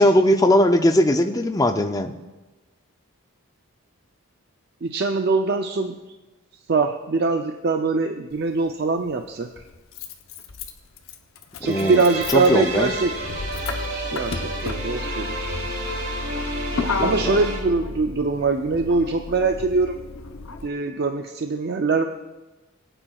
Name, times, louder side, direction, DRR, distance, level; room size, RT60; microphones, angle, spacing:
voice 1, 0.0-2.1 11.6-12.0 12.3-12.9 16.8-17.3, left 1 dB, 15° left, 7 dB, 0.5 m, -19 dB
voice 2, 4.8-5.9 6.7-9.6 11.6-13.1 13.8-15.7 17.0-20.0 20.6-22.0, right 3 dB, 45° right, 5 dB, 0.5 m, -23 dB
Motor vehicle (road), 8.3-8.4 9.6-20.7, left 3 dB, 65° left, 0.8 m, -32 dB
sound 1, 11.6-17.6, right 1 dB, 60° right, 2.4 m, -31 dB
22.5 x 8.9 x 2.3 m, 1.1 s
head